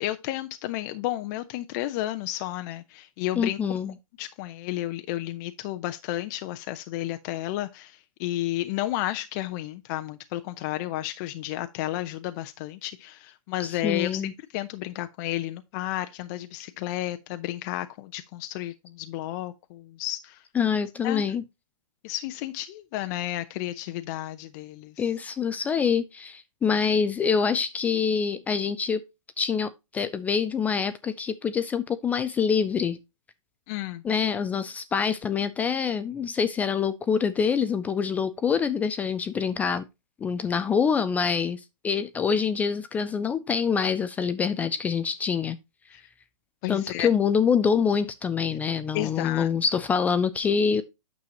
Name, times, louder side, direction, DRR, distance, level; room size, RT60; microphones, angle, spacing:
voice 1, 0.0-3.6 4.2-14.2 14.5-20.4 21.0-21.2 22.0-24.9 33.7-34.0 45.9-46.0 46.6-47.1 48.9-49.5, left 15 dB, 30° left, 0.7 m, -32 dB
voice 2, 3.4-3.9 13.6-14.3 20.6-21.4 25.0-29.0 29.4-33.0 34.0-39.8 40.2-45.6 46.7-50.8, left 6 dB, 10° left, 0.3 m, -25 dB
8.9 x 6.9 x 2.9 m
hypercardioid pair, 130°, 18 cm